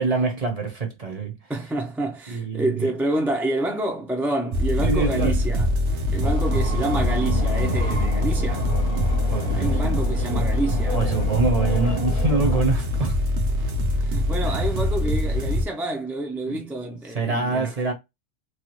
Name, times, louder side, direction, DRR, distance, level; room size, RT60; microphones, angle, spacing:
voice 1, 0.0-1.4 2.3-2.9 4.8-5.4 9.3-9.9 10.3-10.4 10.9-13.2 14.5-14.6 16.5-16.6 17.1-17.9, right 4 dB, 35° right, 0.8 m, -25 dB
voice 2, 1.5-5.7 6.1-8.7 9.5-11.0 14.0-17.7, right 1 dB, ahead, 0.4 m, -28 dB
sound 1, 4.5-15.6, left 1 dB, 75° right, 1.0 m, -23 dB
sound 2, 6.2-12.6, left 2 dB, 50° left, 0.9 m, -33 dB
3.0 x 2.3 x 3.0 m
omnidirectional pair, 1.2 m